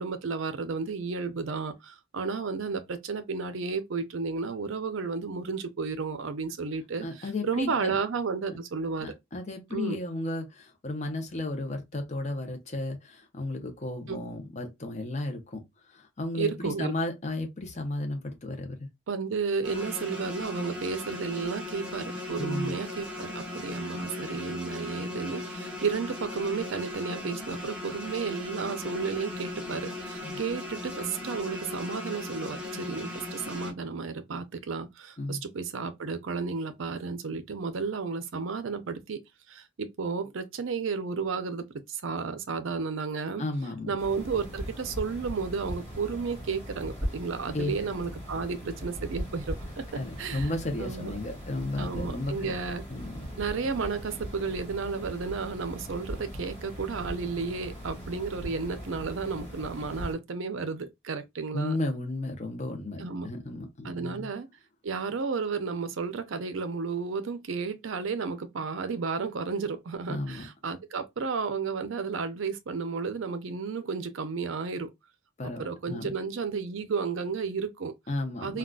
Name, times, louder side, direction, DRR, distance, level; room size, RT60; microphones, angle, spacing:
voice 1, 0.0-9.2 9.7-10.0 14.1-14.3 16.3-16.9 19.1-43.4 43.9-50.5 50.8-51.1 51.8-52.8 53.4-61.8 63.0-63.3 63.8-64.5 64.8-74.9 75.4-77.9 78.4-78.6, right 5 dB, 65° right, 0.5 m, -32 dB
voice 2, 7.0-8.0 9.0-15.6 15.9-18.9 22.4-22.7 30.2-30.4 35.2-35.4 43.4-43.9 47.5-47.7 49.9-52.3 52.9-53.3 61.5-64.3 70.1-70.4 75.4-76.1 78.1-78.6, left 2 dB, 35° left, 0.6 m, -34 dB
sound 1, 19.6-33.7, left 2 dB, 5° right, 0.8 m, -38 dB
sound 2, 44.0-60.1, equal, 10° left, 2.0 m, -39 dB
3.6 x 2.3 x 2.3 m
head